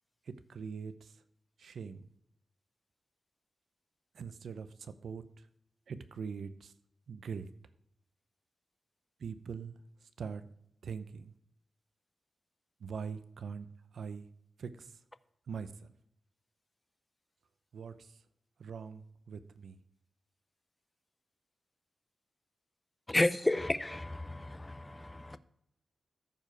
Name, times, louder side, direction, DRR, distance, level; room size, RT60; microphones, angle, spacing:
voice 1, 0.3-1.1 1.6-2.1 4.1-5.2 5.9-6.7 7.1-7.5 9.2-9.7 10.2-10.4 10.8-11.3 12.8-13.7 13.9-14.3 14.6-14.9 15.5-15.7 17.7-18.1 18.6-19.8, right 6 dB, 75° right, 0.6 m, -42 dB
voice 2, 23.1-25.4, left 1 dB, 10° left, 0.5 m, -32 dB
14.0 x 4.9 x 4.5 m
wide cardioid pair, 155°, 0 cm